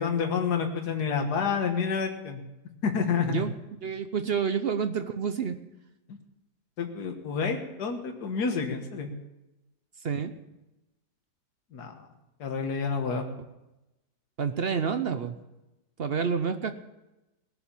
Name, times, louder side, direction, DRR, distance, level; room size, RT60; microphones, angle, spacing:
voice 1, 0.0-2.4 2.8-3.4 6.1-6.2 6.8-9.1 11.7-12.1 12.4-13.2, left 5 dB, 70° left, 4 dB, 1.9 m, -29 dB
voice 2, 3.8-5.6 10.0-10.3 14.4-15.4 16.0-16.7, right 6 dB, 55° right, 9 dB, 0.6 m, -28 dB
19.5 x 7.2 x 7.0 m, 0.97 s
omnidirectional pair, 1.8 m